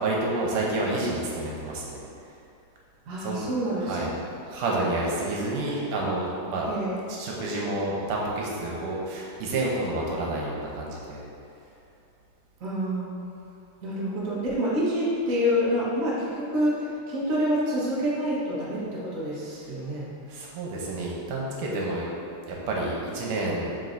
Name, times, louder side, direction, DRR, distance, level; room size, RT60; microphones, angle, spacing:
voice 1, 0.0-2.0 3.2-3.5 3.8-4.2 4.5-6.7 7.1-11.2 20.3-22.0 22.5-23.7, right 2 dB, 75° right, -3 dB, 2.4 m, -29 dB
voice 2, 3.0-4.0 6.7-7.0 12.6-13.3 13.8-20.1, equal, 50° right, -8 dB, 1.0 m, -27 dB
7.6 x 5.2 x 2.7 m, 2.6 s
omnidirectional pair, 3.8 m